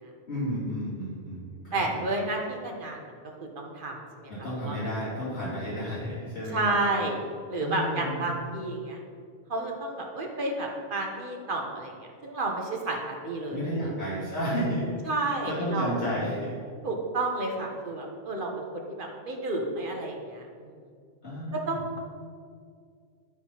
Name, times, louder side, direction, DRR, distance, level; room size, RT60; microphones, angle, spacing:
voice 1, 0.3-2.0 4.3-6.8 7.6-8.5 13.5-16.6 21.2-21.8, equal, 65° left, -10 dB, 3.0 m, -32 dB
voice 2, 1.7-3.0 3.4-4.3 4.6-4.8 6.5-7.2 7.5-9.0 9.5-11.9 12.2-13.9 15.1-15.9 16.8-20.7 21.5-22.0, right 2 dB, 45° right, 1 dB, 1.3 m, -31 dB
11.5 x 3.9 x 5.7 m, 2.2 s
omnidirectional pair, 1.2 m